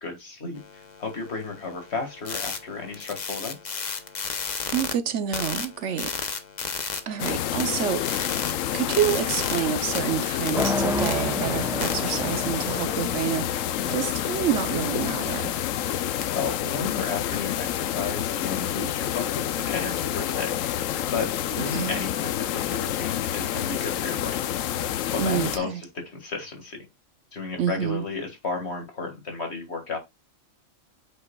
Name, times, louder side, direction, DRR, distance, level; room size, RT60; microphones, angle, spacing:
voice 1, 0.0-3.8 13.8-13.9 16.4-20.6 21.1-24.4 24.8-26.8 27.3-30.0, left 4 dB, 55° left, 2.1 m, -33 dB
sound 1, 0.6-4.9 5.3-7.3 7.6-9.6 9.9-11.1 11.8-11.9 16.2-17.5, left 5 dB, 40° left, 0.9 m, -34 dB
voice 2, 4.7-6.1 7.1-8.0 8.7-15.5 21.7-22.0 25.2-25.8 27.6-28.1, right 9 dB, 70° right, 1.1 m, -28 dB
sound 2, 7.2-25.6, left 11 dB, 90° left, 1.0 m, -28 dB
sound 3, 10.5-16.6, left 1 dB, 5° right, 0.4 m, -32 dB
7.7 x 5.8 x 2.3 m
omnidirectional pair, 1.3 m